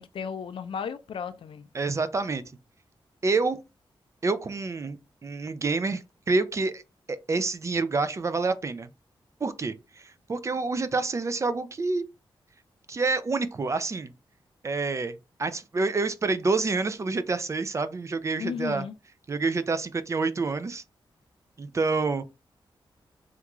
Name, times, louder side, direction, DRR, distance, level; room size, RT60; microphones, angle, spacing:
voice 1, 0.0-1.7 18.4-18.9, left 6 dB, 70° left, 0.4 m, -34 dB
voice 2, 1.7-2.4 3.2-3.6 4.2-6.8 7.1-8.9 9.4-12.0 12.9-14.1 14.6-18.8 19.3-20.8 21.6-22.2, right 3 dB, 35° right, 0.3 m, -28 dB
3.5 x 2.3 x 2.9 m
wide cardioid pair, 115°, 9 cm